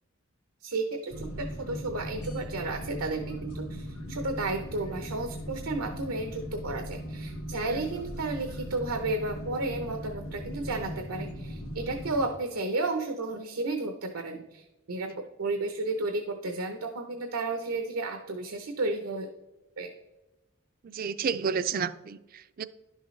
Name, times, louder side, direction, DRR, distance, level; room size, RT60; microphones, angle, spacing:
voice 1, 0.6-19.3 19.8-19.9, right 2 dB, 85° right, 0.8 m, -33 dB
sound 1, 1.1-12.3, equal, 90° left, 1.6 m, -39 dB
voice 2, 20.8-22.6, right 6 dB, 40° right, 0.3 m, -31 dB
11.0 x 6.5 x 3.2 m
head